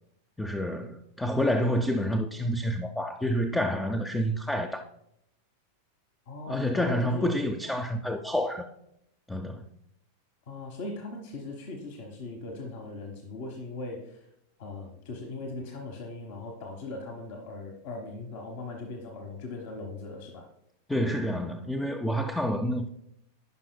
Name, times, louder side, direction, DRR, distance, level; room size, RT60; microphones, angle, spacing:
voice 1, 0.4-4.8 6.5-8.7 9.3-9.6 20.9-22.9, equal, 5° left, 0.5 m, -28 dB
voice 2, 6.3-7.3 10.5-14.3 14.6-20.5, left 2 dB, 50° left, 1.1 m, -39 dB
14.5 x 5.8 x 2.2 m
figure-of-eight pair, 90°, 0 cm